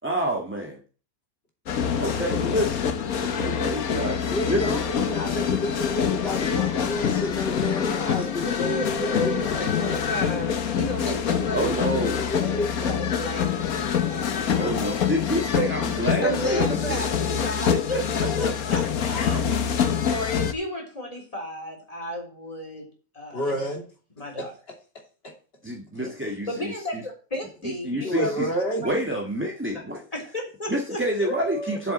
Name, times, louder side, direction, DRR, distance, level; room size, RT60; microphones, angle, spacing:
voice 1, 0.0-0.7 2.0-4.8 11.5-12.3 14.6-17.1 17.7-19.4 25.6-27.0 27.6-28.5 28.8-30.0 30.7-31.9, right 1 dB, 10° right, 1.8 m, -28 dB
sound 1, 1.7-20.5, left 8 dB, 80° left, 1.5 m, -26 dB
voice 2, 4.3-10.0 11.6-13.0 23.3-23.9 24.4-24.5 25.2-25.3 28.0-28.9, equal, 45° left, 3.0 m, -30 dB
voice 3, 8.4-12.0 12.5-12.7 13.0-14.6 16.2-19.4 20.0-22.9 23.1-23.6 24.2-24.5 25.9-26.1 26.5-28.3 29.7-29.8 30.1-31.8, left 1 dB, 25° left, 3.9 m, -33 dB
7.6 x 7.2 x 7.8 m
omnidirectional pair, 1.5 m